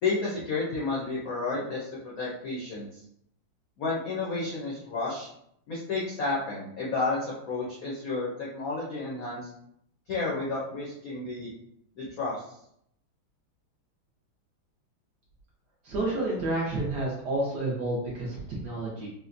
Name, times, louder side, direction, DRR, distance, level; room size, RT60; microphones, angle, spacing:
voice 1, 0.0-3.0 3.8-5.3 5.7-9.5 10.1-11.5 12.0-12.4, left 3 dB, 75° left, -6 dB, 0.8 m, -31 dB
voice 2, 15.8-19.1, right 2 dB, 65° right, -5 dB, 1.1 m, -30 dB
4.1 x 2.1 x 2.5 m, 0.73 s
omnidirectional pair, 2.4 m